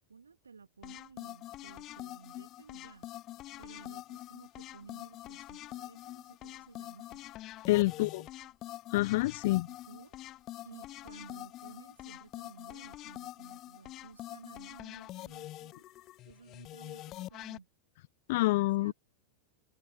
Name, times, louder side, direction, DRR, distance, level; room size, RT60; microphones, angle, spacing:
voice 1, 0.0-3.1 3.6-7.2 7.7-8.5 9.6-10.1 10.6-15.9 16.2-17.7 18.6-18.9, right 5 dB, 75° right, 5.7 m, -55 dB
sound 1, 0.8-17.6, left 15 dB, 35° left, 6.5 m, -45 dB
voice 2, 7.7-8.2 8.9-9.7 18.3-18.9, left 19 dB, 50° left, 0.6 m, -27 dB
figure-of-eight pair, 90°, 0 cm